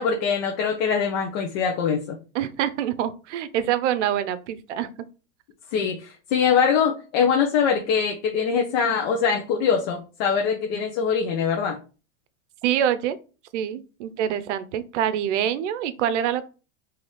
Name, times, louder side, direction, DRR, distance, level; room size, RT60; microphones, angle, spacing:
voice 1, 0.0-2.2 5.7-11.8, left 6 dB, 50° left, 0.8 m, -23 dB
voice 2, 2.3-4.9 12.6-13.2 13.5-16.4, right 10 dB, 65° right, 0.6 m, -25 dB
3.9 x 2.8 x 3.2 m
supercardioid pair, 130°, 38 cm